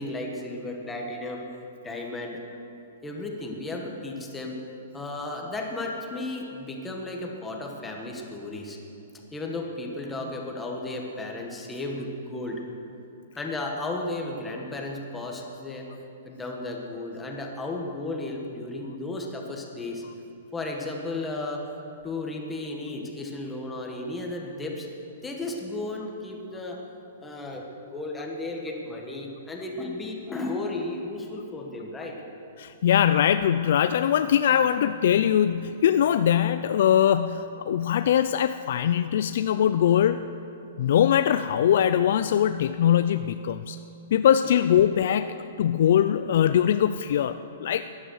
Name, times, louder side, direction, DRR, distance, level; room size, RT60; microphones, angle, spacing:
voice 1, 0.0-1.4 1.8-2.4 3.0-4.6 4.9-8.8 9.3-12.6 13.3-15.9 16.2-20.0 20.5-21.6 22.0-24.9 25.2-26.8 27.2-32.2, left 2 dB, 10° left, 0 dB, 1.4 m, -34 dB
voice 2, 32.6-40.3 40.8-43.8 44.1-47.9, left 9 dB, 55° left, 10 dB, 0.4 m, -22 dB
16.5 x 11.0 x 6.4 m, 2.8 s
hypercardioid pair, 165°, 0 cm